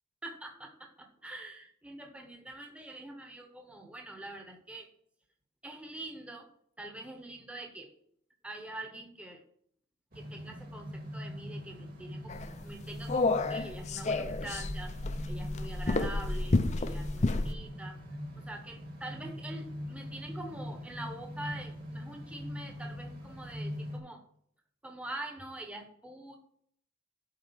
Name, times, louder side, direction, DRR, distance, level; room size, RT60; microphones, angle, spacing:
voice 1, 0.2-4.9 5.6-6.5 6.8-7.9 8.4-9.4 10.1-18.0 18.3-24.2 24.8-26.4, right 1 dB, 5° right, 3 dB, 1.0 m, -45 dB
sound 1, 10.1-24.0, equal, 50° right, 2.2 m, -42 dB
sound 2, 12.3-17.5, left 3 dB, 35° left, 0.6 m, -31 dB
7.8 x 5.0 x 7.1 m, 0.65 s
head